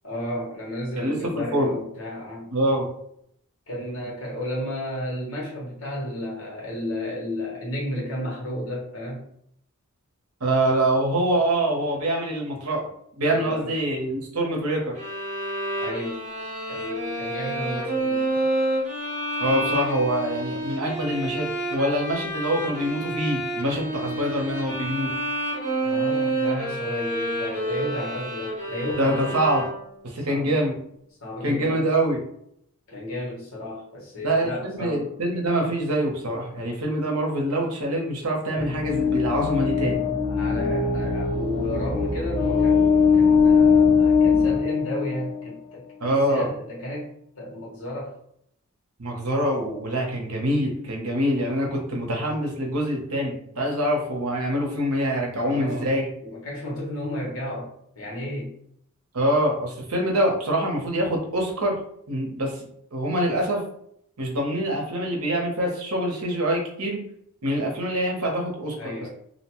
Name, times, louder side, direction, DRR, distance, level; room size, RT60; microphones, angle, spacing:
voice 1, 0.0-2.5 3.7-9.2 13.3-13.7 15.8-16.2 16.7-18.4 25.8-29.4 30.1-30.6 31.2-31.8 32.9-35.1 40.3-48.1 55.4-55.9 56.2-58.5 68.8-69.1, left 1 dB, 70° left, -4 dB, 1.2 m, -33 dB
voice 2, 1.0-1.7 2.5-2.9 10.4-12.9 13.2-14.9 19.4-25.1 29.0-29.6 30.0-30.7 31.4-32.2 34.2-40.1 46.0-46.5 49.0-56.1 59.1-61.8 62.1-63.6 64.2-67.0 67.4-68.9, right 1 dB, 75° right, 0 dB, 0.8 m, -25 dB
sound 1, 15.0-30.1, right 1 dB, 35° right, 0.8 m, -29 dB
sound 2, 38.6-45.5, left 5 dB, 30° left, 0.8 m, -21 dB
2.7 x 2.1 x 2.9 m, 0.70 s
head